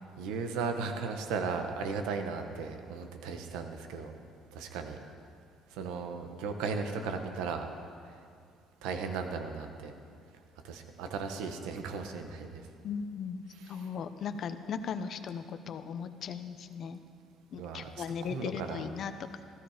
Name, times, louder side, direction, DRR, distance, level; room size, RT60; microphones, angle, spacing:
voice 1, 0.2-4.1 4.5-5.0 5.7-7.7 8.8-9.9 10.6-12.6 13.5-13.9 17.5-17.9 18.2-18.9, right 5 dB, 85° right, 5 dB, 1.3 m, -36 dB
voice 2, 12.8-13.4 13.7-17.0 17.5-19.1, left 6 dB, 60° left, 10 dB, 0.8 m, -37 dB
15.0 x 14.0 x 5.1 m, 2.3 s
supercardioid pair, 75°, 0 cm